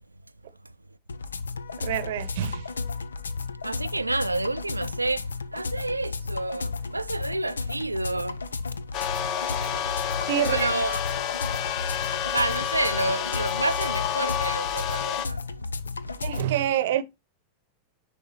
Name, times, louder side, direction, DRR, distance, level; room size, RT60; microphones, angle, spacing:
sound 1, 1.1-16.5, left 4 dB, 75° left, 0.5 m, -33 dB
voice 1, 1.8-2.7 10.3-10.7 16.2-17.0, right 11 dB, 55° right, 0.8 m, -26 dB
voice 2, 3.6-8.4 10.5-11.0 12.3-15.4, right 2 dB, 85° right, 0.4 m, -29 dB
sound 2, 8.9-15.3, left 10 dB, 35° left, 0.7 m, -29 dB
10.0 x 3.5 x 4.2 m
figure-of-eight pair, 90°, 0 cm